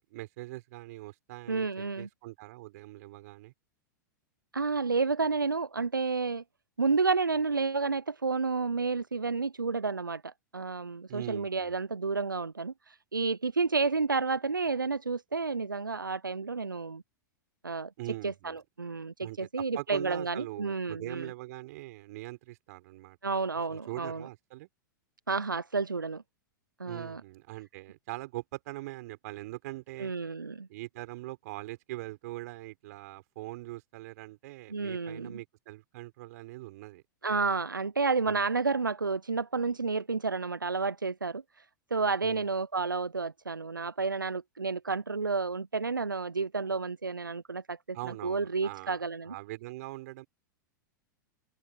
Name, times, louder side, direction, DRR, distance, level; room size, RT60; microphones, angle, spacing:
voice 1, 0.0-3.5 11.1-11.7 18.0-18.6 19.2-19.5 19.7-23.2 23.7-24.7 26.8-30.1 30.7-37.0 38.3-38.4 42.2-42.4 47.9-49.0 49.3-50.3, right 19 dB, 55° right, 6.1 m, -42 dB
voice 2, 1.5-2.1 4.5-6.4 6.8-17.0 17.6-17.9 18.2-21.3 23.2-24.3 25.3-26.2 26.8-27.2 30.0-30.7 34.7-35.4 37.2-41.7 41.9-49.3, right 4 dB, 90° right, 0.9 m, -31 dB
open air
figure-of-eight pair, 100°, 11 cm